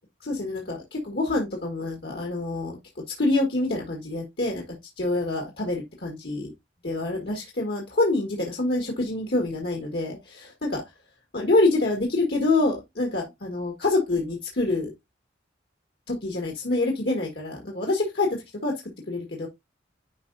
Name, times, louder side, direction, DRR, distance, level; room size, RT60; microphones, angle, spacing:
voice 1, 0.2-2.8 3.2-4.6 5.0-6.5 6.8-10.8 11.3-14.9 16.1-18.7 19.1-19.5, left 2 dB, 55° left, 1 dB, 1.5 m, -26 dB
10.5 x 4.9 x 2.6 m, 0.20 s
head